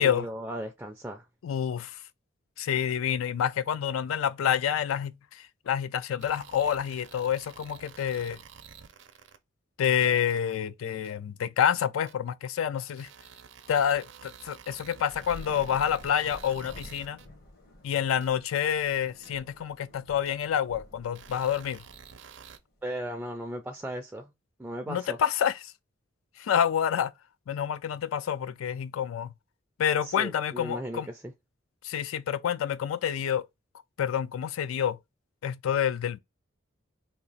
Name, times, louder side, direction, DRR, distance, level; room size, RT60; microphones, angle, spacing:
voice 1, 0.0-1.3 22.8-24.3 24.6-25.2 30.0-31.3, right 1 dB, 10° right, 0.3 m, -36 dB
voice 2, 1.4-2.0 2.6-8.4 9.8-13.1 13.7-17.2 17.8-21.8 24.9-25.5 26.4-27.1 27.5-29.3 29.8-31.1 31.8-33.4 34.0-35.0 35.4-36.2, left 9 dB, 90° left, 0.3 m, -28 dB
sound 1, 6.2-9.4 9.9-10.4 11.0-11.1 12.1-12.2 13.0-17.3 18.2-18.3 19.2-19.3 20.3-20.4 21.1-22.6, right 7 dB, 60° right, 0.5 m, -50 dB
Thunder / Rain, 15.1-22.6, left 1 dB, 50° left, 0.9 m, -49 dB
3.0 x 2.4 x 3.9 m
head